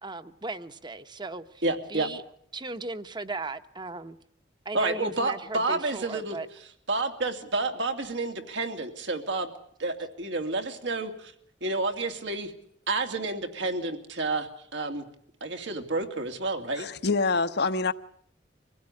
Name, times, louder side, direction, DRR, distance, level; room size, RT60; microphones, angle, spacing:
voice 1, 0.0-2.2 2.5-4.2 4.6-6.5, right 3 dB, 25° right, 1.0 m, -37 dB
voice 2, 1.6-2.1 4.7-6.4 6.9-9.5 9.8-11.3 11.6-12.5 12.9-15.0 15.4-16.9, right 2 dB, 85° right, 2.7 m, -30 dB
voice 3, 16.8-17.9, left 4 dB, 65° left, 1.0 m, -25 dB
25.0 x 16.0 x 9.8 m
head